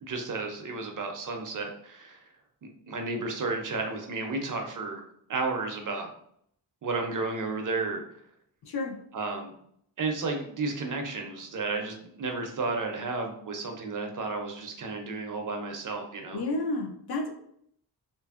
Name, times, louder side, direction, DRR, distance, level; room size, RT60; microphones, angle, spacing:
voice 1, 0.0-2.2 2.9-5.0 5.3-6.1 6.8-8.0 9.1-9.5 10.0-16.4, right 3 dB, 45° right, 3 dB, 0.4 m, -32 dB
voice 2, 8.6-9.0 16.3-17.3, left 2 dB, 60° left, 4 dB, 0.5 m, -31 dB
2.8 x 2.5 x 2.3 m, 0.69 s
wide cardioid pair, 150°, 44 cm